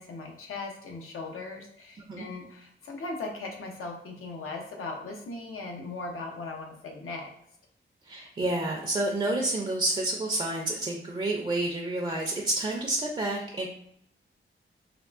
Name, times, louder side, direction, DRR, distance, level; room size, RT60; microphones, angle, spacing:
voice 1, 0.0-7.3, left 3 dB, 90° left, 1 dB, 0.6 m, -38 dB
voice 2, 8.0-13.7, right 2 dB, 25° right, -1 dB, 0.4 m, -29 dB
3.4 x 2.3 x 2.4 m, 0.72 s
wide cardioid pair, 135°, 21 cm